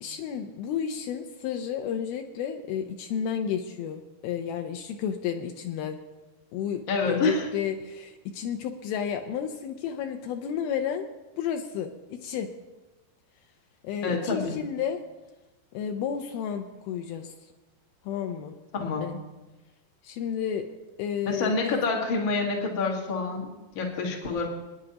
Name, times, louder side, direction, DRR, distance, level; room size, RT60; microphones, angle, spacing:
voice 1, 0.0-6.0 6.5-11.1 11.4-12.5 13.8-15.0 15.7-17.3 18.0-18.6 19.0-19.1 20.0-20.7 21.0-21.8, left 8 dB, 85° left, 5 dB, 2.1 m, -32 dB
voice 2, 6.9-7.5 14.0-14.5 18.7-19.2 21.3-24.5, left 3 dB, 65° left, 0 dB, 1.1 m, -27 dB
28.0 x 9.8 x 2.9 m, 1.1 s
omnidirectional pair, 5.1 m